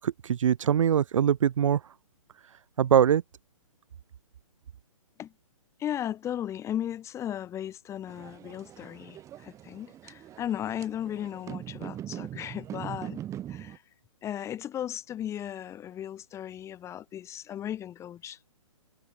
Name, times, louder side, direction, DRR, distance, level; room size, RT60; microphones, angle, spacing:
voice 1, 0.0-1.8 2.8-3.2, right 9 dB, 65° right, 1.3 m, -23 dB
voice 2, 5.8-13.2 13.5-13.8 14.2-18.5, left 10 dB, 15° left, 3.4 m, -36 dB
sound 1, 8.1-13.8, right 11 dB, 15° right, 3.0 m, -41 dB
hypercardioid pair, 145°, 18 cm